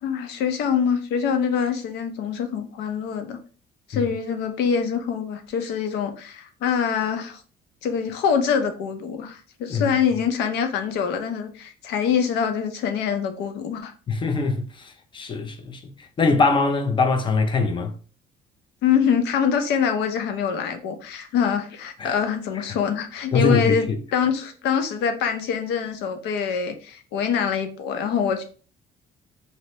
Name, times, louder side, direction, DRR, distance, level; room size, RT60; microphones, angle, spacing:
voice 1, 0.0-3.4 3.9-7.4 7.8-13.9 18.8-28.4, left 7 dB, 85° left, 0.6 m, -24 dB
voice 2, 14.1-17.9 22.0-22.2 23.3-24.0, left 3 dB, 30° left, 0.5 m, -23 dB
2.7 x 2.0 x 3.1 m
cardioid pair, 110°, 17 cm